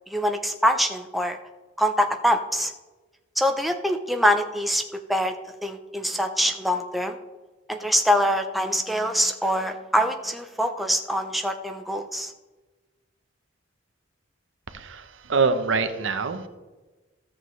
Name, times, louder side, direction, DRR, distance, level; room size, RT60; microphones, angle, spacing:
voice 1, 0.1-1.4 1.8-2.7 3.4-4.8 5.1-5.3 5.6-7.2 7.7-12.3, equal, ahead, 4 dB, 0.5 m, -24 dB
voice 2, 14.7-16.5, right 4 dB, 75° right, 9 dB, 0.8 m, -25 dB
13.5 x 7.3 x 3.2 m, 1.2 s
head